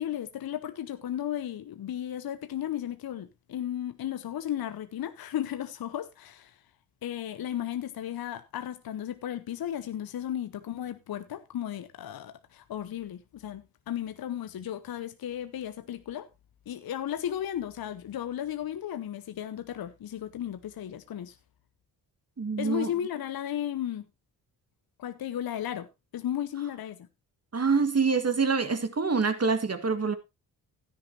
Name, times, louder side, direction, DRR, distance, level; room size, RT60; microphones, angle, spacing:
voice 1, 0.0-6.6 7.0-16.3 16.7-21.4 22.6-24.1 25.0-27.1, left 11 dB, 45° left, 0.9 m, -35 dB
voice 2, 22.4-22.9 27.5-30.1, right 4 dB, 30° right, 2.0 m, -26 dB
13.0 x 10.0 x 2.9 m
hypercardioid pair, 40°, 49 cm